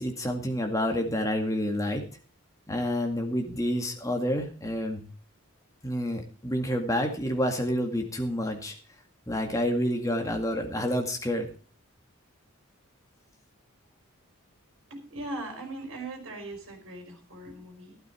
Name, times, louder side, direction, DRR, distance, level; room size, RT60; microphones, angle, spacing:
voice 1, 0.0-2.0 2.7-5.1 5.8-8.7 9.3-11.4, equal, 15° left, 3 dB, 2.1 m, -28 dB
voice 2, 14.9-18.0, right 2 dB, 70° right, 4 dB, 4.0 m, -39 dB
12.0 x 12.0 x 4.5 m, 0.37 s
head